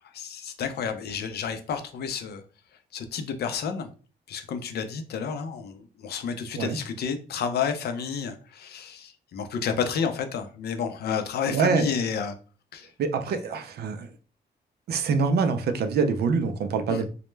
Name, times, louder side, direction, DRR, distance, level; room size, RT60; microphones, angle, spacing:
voice 1, 0.1-2.4 2.9-3.9 4.3-12.4 12.7-12.9 16.9-17.0, left 6 dB, 65° left, 0.4 m, -30 dB
voice 2, 11.5-11.9 13.0-14.1 14.9-17.1, right 5 dB, 65° right, 0.4 m, -25 dB
2.1 x 2.0 x 3.1 m
cardioid pair, 115°, 18 cm